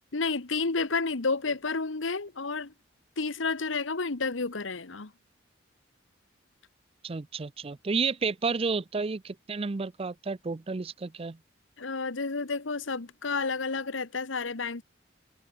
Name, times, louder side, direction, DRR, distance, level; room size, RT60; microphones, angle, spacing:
voice 1, 0.1-2.7 3.2-5.1 11.8-14.8, left 4 dB, 90° left, 1.3 m, -30 dB
voice 2, 7.0-11.4, right 4 dB, 30° right, 0.5 m, -31 dB
head